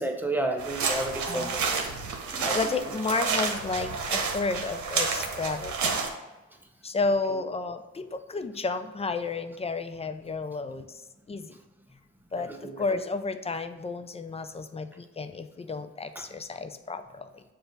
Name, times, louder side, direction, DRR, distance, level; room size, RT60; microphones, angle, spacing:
voice 1, 0.0-1.8 2.4-2.7 12.3-12.7, right 1 dB, 5° right, 4 dB, 0.7 m, -31 dB
sound 1, 0.6-6.1, right 5 dB, 70° right, 1.0 m, -30 dB
voice 2, 1.2-1.8 2.3-5.9 6.8-11.0 11.3-11.6 12.3-17.4, left 3 dB, 20° left, 9 dB, 0.4 m, -32 dB
7.0 x 2.5 x 5.2 m, 1.1 s
cardioid pair, 90°, 30 cm